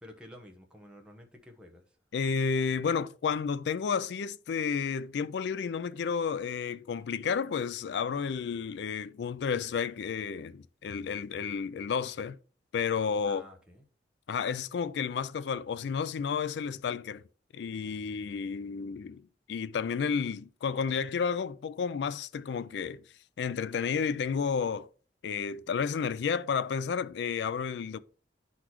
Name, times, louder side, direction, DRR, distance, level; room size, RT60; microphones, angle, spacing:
voice 1, 0.0-2.0 13.2-13.8, left 1 dB, 5° right, 0.9 m, -51 dB
voice 2, 2.1-12.4 12.7-13.4 14.3-17.2 17.5-23.0 23.4-24.9 25.2-28.0, left 6 dB, 70° left, 0.3 m, -31 dB
11.0 x 4.0 x 3.0 m
head